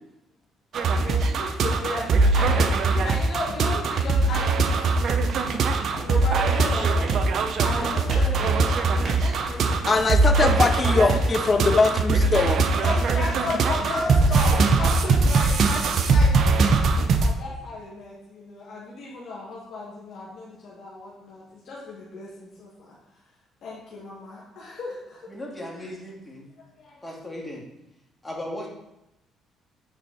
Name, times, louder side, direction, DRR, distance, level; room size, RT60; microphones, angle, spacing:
sound 1, 0.7-17.3, right 3 dB, 60° right, 0.6 m, -21 dB
voice 1, 1.0-10.3 10.8-11.8 12.8-16.7 17.2-23.0 23.6-25.3 25.8-25.9 26.6-27.0, left 2 dB, 65° left, -6 dB, 2.0 m, -35 dB
sound 2, 5.9-15.9, right 2 dB, 40° right, 2.0 m, -42 dB
voice 2, 9.9-12.8 13.9-14.1, left 4 dB, 35° left, 9 dB, 0.6 m, -22 dB
voice 3, 25.3-26.5 27.0-27.6 28.2-28.7, left 1 dB, 10° left, -2 dB, 2.0 m, -36 dB
8.4 x 4.4 x 4.2 m, 0.88 s
cardioid pair, 100°, 0 cm